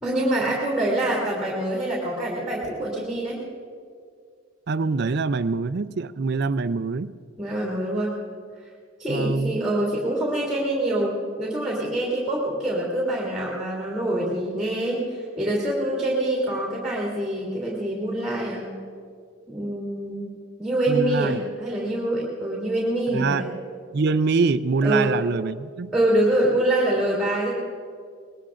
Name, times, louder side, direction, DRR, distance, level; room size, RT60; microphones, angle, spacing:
voice 1, 0.0-3.4 7.4-8.2 9.0-18.8 19.5-20.3 20.6-23.5 24.8-25.2 25.9-27.5, right 1 dB, 5° right, -4 dB, 3.0 m, -25 dB
voice 2, 4.7-7.2 9.1-9.6 20.9-21.4 23.1-23.5 23.9-25.9, right 4 dB, 55° right, 14 dB, 0.4 m, -24 dB
25.0 x 20.0 x 2.5 m, 2.1 s
head